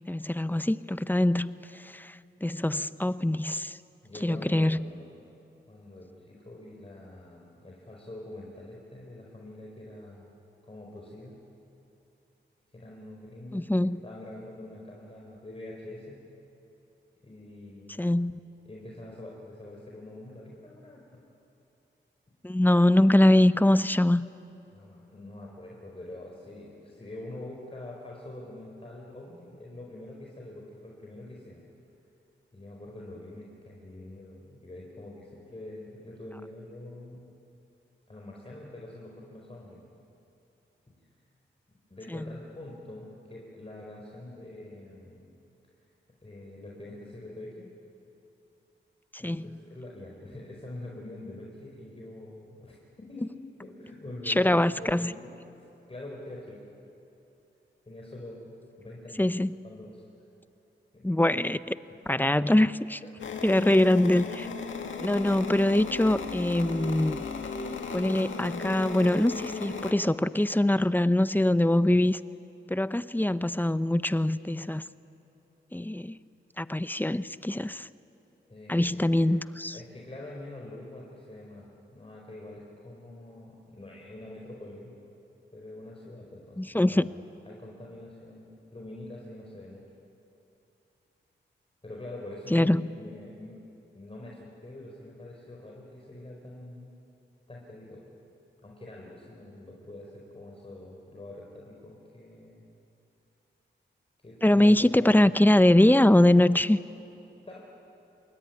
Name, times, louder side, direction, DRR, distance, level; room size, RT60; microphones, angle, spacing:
voice 1, 0.1-3.8 4.2-4.9 13.5-14.0 18.0-18.3 22.4-24.3 42.1-42.2 49.1-49.6 54.3-55.1 59.2-59.5 61.0-61.8 62.1-63.0 63.4-64.5 65.0-67.2 67.9-72.2 72.7-74.8 75.7-76.2 76.6-77.9 78.7-79.8 86.6-87.1 92.5-92.9 104.4-106.8, left 1 dB, 10° left, 14 dB, 0.7 m, -23 dB
voice 2, 4.0-5.1 5.7-10.3 10.6-11.4 12.7-13.7 14.0-16.2 17.2-18.1 18.6-21.2 23.7-23.8 24.7-31.6 32.5-37.3 38.1-39.8 40.9-41.0 41.9-45.3 46.2-47.7 49.2-53.3 53.6-55.4 55.9-56.6 57.9-59.3 59.6-60.0 60.9-61.1 61.9-62.5 78.5-79.4 79.7-84.9 85.5-89.8 91.8-93.6 93.9-96.9 97.5-98.0 98.6-102.6 104.2-105.3 107.5-107.6, left 1 dB, 30° left, -2 dB, 4.9 m, -45 dB
sound 1, 63.2-69.9, left 4 dB, 80° left, 1.9 m, -36 dB
26.5 x 21.5 x 9.6 m, 2.9 s
cardioid pair, 60°, 20 cm